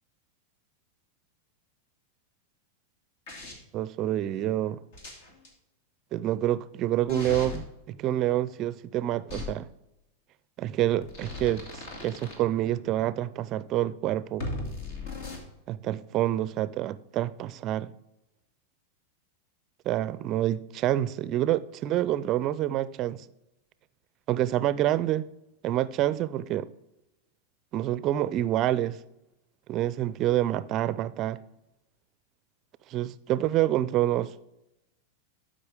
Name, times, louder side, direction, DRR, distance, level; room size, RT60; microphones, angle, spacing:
sound 1, 3.3-3.5 4.9-5.5 7.1-7.6 9.3-9.4 11.0-12.3 14.4-15.4, left 2 dB, 65° left, 2.4 m, -37 dB
voice 1, 3.7-4.8 6.1-9.7 10.6-14.5 15.7-17.9 19.9-23.2 24.3-25.3 25.6-26.7 27.7-29.0 29.7-31.4 32.9-34.3, right 13 dB, 40° right, 0.4 m, -27 dB
12.0 x 5.2 x 3.5 m
hypercardioid pair, 95°, 0 cm